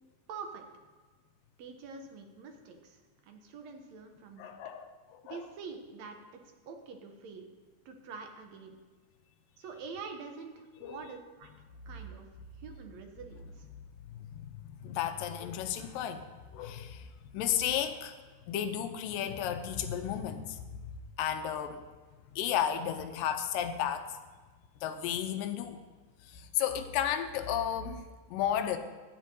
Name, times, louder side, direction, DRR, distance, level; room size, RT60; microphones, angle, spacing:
voice 1, 0.3-0.7 1.6-4.5 5.2-6.2 6.7-7.5 7.9-8.8 9.6-11.5 11.9-12.3 12.6-13.7, right 5 dB, 70° right, 4 dB, 1.8 m, -46 dB
voice 2, 4.4-5.5 10.8-11.0 14.1-21.8 22.3-24.2 24.8-25.8 26.2-28.8, left 9 dB, 85° left, 8 dB, 2.4 m, -34 dB
15.5 x 10.5 x 2.8 m, 1.3 s
omnidirectional pair, 4.0 m